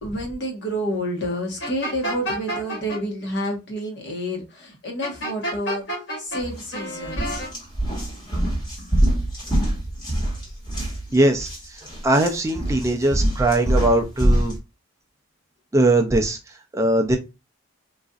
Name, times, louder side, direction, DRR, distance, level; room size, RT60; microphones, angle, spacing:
voice 1, 0.0-5.8 6.2-7.4, equal, 60° left, 2 dB, 1.1 m, -29 dB
sound 1, 1.6-3.0 5.0-6.4 6.7-7.5, equal, 80° left, 1.8 m, -29 dB
sound 2, 6.4-6.7 7.1-14.6, right 1 dB, 20° left, 1.2 m, -24 dB
voice 2, 11.1-11.5 12.0-14.5 15.7-16.4 16.7-17.2, right 1 dB, 15° right, 4 dB, 0.3 m, -20 dB
4.0 x 2.5 x 2.3 m, 0.27 s
head